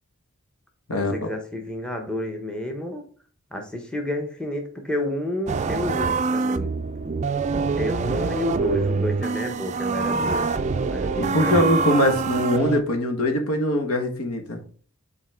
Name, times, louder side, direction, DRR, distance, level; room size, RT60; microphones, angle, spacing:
voice 1, 0.9-3.0 3.5-6.7 7.7-11.7, left 1 dB, 5° left, 2 dB, 0.9 m, -30 dB
sound 1, 5.5-12.8, right 4 dB, 30° right, 0.3 m, -25 dB
voice 2, 11.1-14.6, left 1 dB, 80° left, 5 dB, 1.2 m, -22 dB
5.5 x 4.2 x 4.4 m, 0.43 s
head